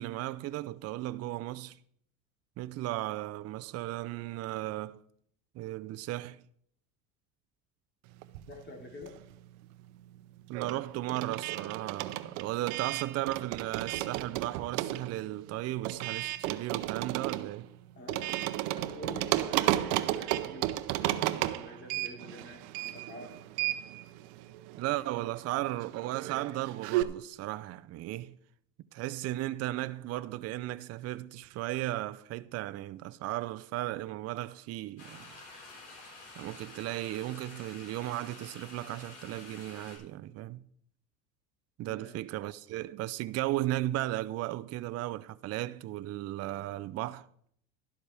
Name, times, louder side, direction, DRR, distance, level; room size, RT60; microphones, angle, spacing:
voice 1, 0.0-1.8 2.6-5.0 5.5-6.4 10.5-17.7 24.8-28.4 28.9-35.3 36.4-40.6 41.8-47.3, right 16 dB, 50° right, 0.5 m, -35 dB
sound 1, 8.2-9.5 9.7-27.0, right 15 dB, 85° right, 0.7 m, -34 dB
voice 2, 8.5-9.2 17.9-18.4 18.7-23.4 41.8-42.1, left 2 dB, 30° left, 3.1 m, -47 dB
sound 2, 35.0-40.0, left 2 dB, 65° left, 4.9 m, -49 dB
11.5 x 11.5 x 3.4 m
supercardioid pair, 110°, 33 cm